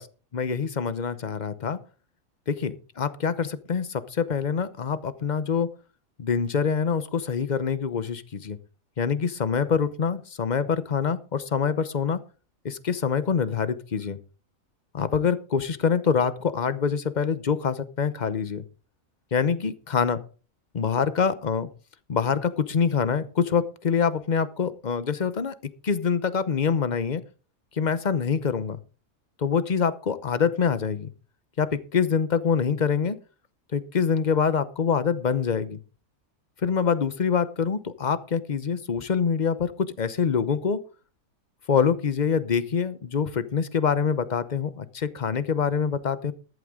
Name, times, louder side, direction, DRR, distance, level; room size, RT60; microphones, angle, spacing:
voice 1, 0.3-1.8 2.5-5.7 6.2-8.6 9.0-12.2 12.6-14.2 14.9-18.6 19.3-20.2 20.7-21.7 22.1-25.5 25.8-27.2 27.7-28.8 29.4-31.1 31.6-33.2 33.7-35.8 36.6-40.8 41.7-46.3, left 6 dB, 40° left, 14 dB, 0.9 m, -25 dB
14.0 x 11.5 x 3.7 m, 0.36 s
omnidirectional pair, 1.5 m